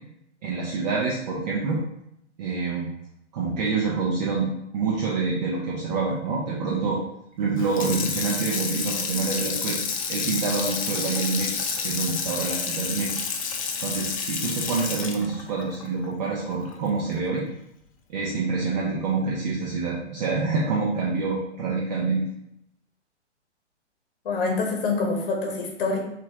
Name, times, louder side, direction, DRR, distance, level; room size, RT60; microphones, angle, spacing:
voice 1, 0.4-1.8 2.4-2.9 3.3-7.0 7.4-9.8 10.1-13.2 13.8-17.4 18.1-22.2, right 4 dB, 35° right, -4 dB, 0.7 m, -27 dB
Water tap faucet / Sink (filling or washing), 7.6-16.8 17.2-17.3, left 6 dB, 30° left, 0.4 m, -30 dB
voice 2, 24.2-26.0, left 3 dB, 50° left, 1 dB, 1.0 m, -26 dB
5.7 x 2.6 x 2.8 m, 0.77 s
figure-of-eight pair, 120°, 35 cm